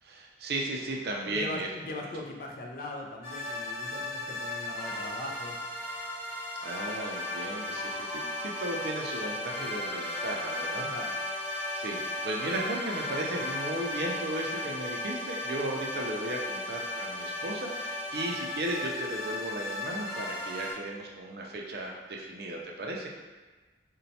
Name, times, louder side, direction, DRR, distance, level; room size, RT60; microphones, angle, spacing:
voice 1, 0.0-1.7 6.6-10.9 11.8-23.1, right 1 dB, 55° right, -1 dB, 0.4 m, -35 dB
voice 2, 1.3-5.6 10.9-11.2, left 2 dB, 50° left, 0 dB, 0.4 m, -40 dB
sound 1, 3.2-20.7, left 1 dB, 30° left, 1.4 m, -35 dB
sound 2, 3.6-15.3, right 1 dB, 5° right, 1.2 m, -49 dB
4.1 x 2.2 x 2.7 m, 1.3 s
head